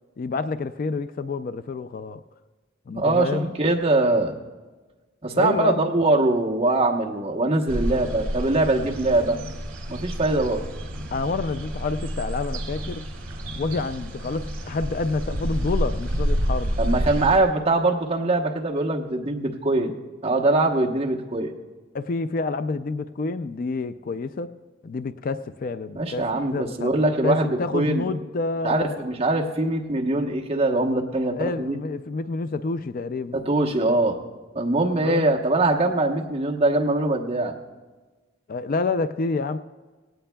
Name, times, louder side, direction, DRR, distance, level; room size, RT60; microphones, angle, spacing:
voice 1, 0.2-2.2 2.9-3.5 5.4-5.9 11.1-13.1 13.5-16.8 21.9-24.5 24.8-26.2 26.5-26.9 27.2-29.2 31.4-33.4 35.0-35.3 38.5-39.6, left 3 dB, 45° left, 11 dB, 0.3 m, -28 dB
voice 2, 2.9-4.3 5.2-9.4 9.9-10.7 16.8-19.9 20.2-21.5 26.0-28.0 28.6-31.8 33.3-34.2 34.5-37.5, right 2 dB, 30° right, 0 dB, 1.0 m, -22 dB
sound 1, 7.7-17.4, equal, 75° right, 1.8 m, -29 dB
18.0 x 17.0 x 2.3 m, 1.3 s
head